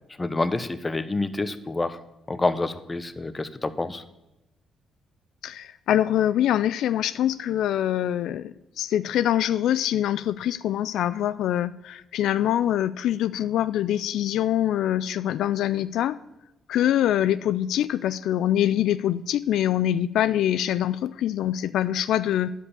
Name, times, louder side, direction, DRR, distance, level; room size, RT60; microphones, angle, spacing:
voice 1, 0.2-2.0 2.3-4.0, left 2 dB, 20° left, 12 dB, 0.8 m, -27 dB
voice 2, 5.4-16.2 16.7-22.5, left 11 dB, 80° left, 14 dB, 0.3 m, -24 dB
10.5 x 5.4 x 8.4 m, 0.95 s
cardioid pair, 90°, 0 cm